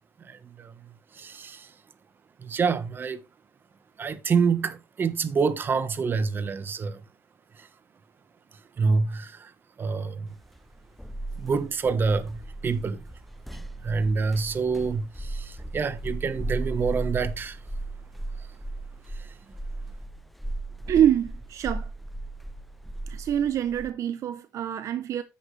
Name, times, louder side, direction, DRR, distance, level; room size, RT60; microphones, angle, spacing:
voice 1, 0.3-0.7 1.2-1.7 2.4-3.2 4.0-7.0 8.8-9.5 9.8-10.3 11.4-13.0 13.8-17.6, right 5 dB, 35° right, 1.2 m, -27 dB
sound 1, 10.4-23.9, right 2 dB, ahead, 0.6 m, -36 dB
voice 2, 20.9-21.9 23.1-25.2, right 10 dB, 55° right, 0.8 m, -25 dB
10.0 x 8.0 x 3.3 m
cardioid pair, 110°, 6 cm